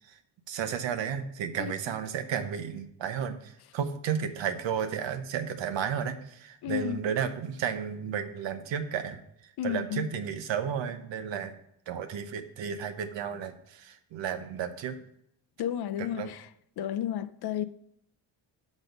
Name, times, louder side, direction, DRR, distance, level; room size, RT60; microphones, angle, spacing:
voice 1, 0.5-9.2 9.6-11.5 11.9-15.0 16.0-16.3, right 8 dB, 80° right, 0.9 m, -33 dB
voice 2, 6.6-7.0 9.6-10.1 15.6-16.5 16.8-17.6, left 10 dB, 60° left, 0.5 m, -32 dB
6.3 x 5.2 x 5.1 m
cardioid pair, 100°, 44 cm